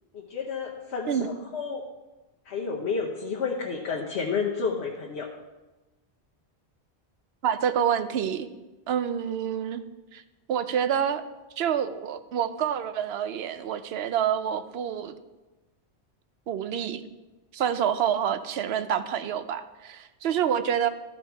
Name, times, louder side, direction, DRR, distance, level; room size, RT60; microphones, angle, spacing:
voice 1, 0.1-1.8 2.5-5.3, left 5 dB, 85° left, -2 dB, 1.2 m, -30 dB
voice 2, 7.4-8.5 8.9-9.8 10.1-10.2 10.5-11.2 11.6-15.1 16.5-17.0 17.5-20.9, right 9 dB, 75° right, 12 dB, 0.8 m, -27 dB
13.0 x 5.8 x 4.5 m, 1.1 s
omnidirectional pair, 1.1 m